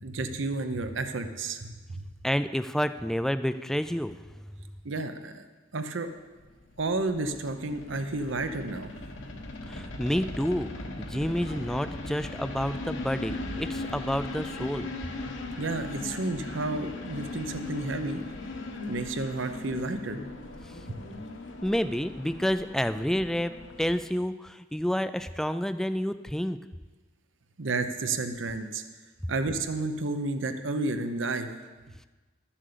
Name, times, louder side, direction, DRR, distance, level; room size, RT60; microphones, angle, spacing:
voice 1, 0.0-2.1 4.8-5.4 5.7-6.1 6.8-8.9 15.6-18.2 18.9-20.2 27.6-28.8 29.3-31.5, right 3 dB, 70° right, 8 dB, 0.8 m, -31 dB
voice 2, 2.2-4.3 9.7-10.7 11.0-14.9 20.6-20.8 21.6-23.5 23.8-26.6, equal, ahead, 11 dB, 0.3 m, -29 dB
sound 1, 6.4-24.1, left 2 dB, 65° left, 1.2 m, -39 dB
12.0 x 7.3 x 6.8 m, 1.3 s
head